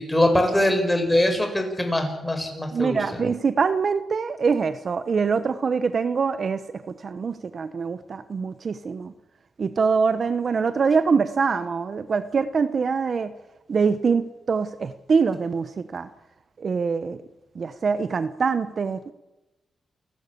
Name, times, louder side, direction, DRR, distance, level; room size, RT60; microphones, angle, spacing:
voice 1, 0.0-3.2, left 1 dB, 10° left, 5 dB, 5.4 m, -22 dB
voice 2, 2.7-9.1 9.6-13.3 13.7-16.1 16.6-17.2 17.5-19.1, right 5 dB, 50° right, 12 dB, 1.0 m, -24 dB
28.5 x 12.5 x 8.5 m, 1.0 s
cardioid pair, 105°, 0 cm